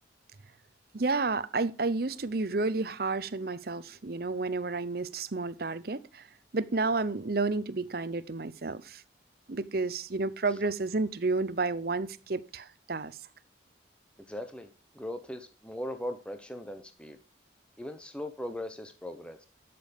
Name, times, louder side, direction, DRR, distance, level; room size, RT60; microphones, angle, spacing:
voice 1, 0.9-6.3 6.5-9.0 9.5-13.2, right 3 dB, 55° right, 0.7 m, -31 dB
voice 2, 14.3-14.7 14.9-17.2 17.8-19.4, left 1 dB, 5° left, 0.9 m, -39 dB
12.5 x 6.9 x 5.2 m
head